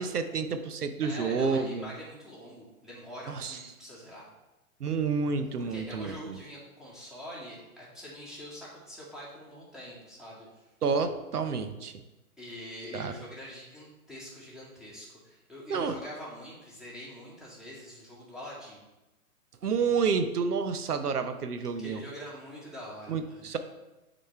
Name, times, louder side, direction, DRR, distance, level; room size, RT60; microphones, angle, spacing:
voice 1, 0.0-1.9 3.3-3.6 4.8-6.4 10.8-11.9 12.9-13.1 15.7-16.0 19.6-22.0 23.1-23.6, right 5 dB, 90° right, 9 dB, 0.7 m, -29 dB
voice 2, 1.0-4.3 5.6-10.6 12.4-18.8 21.8-23.5, equal, ahead, -7 dB, 2.0 m, -44 dB
7.8 x 4.2 x 4.4 m, 1.0 s
hypercardioid pair, 120°, 45 cm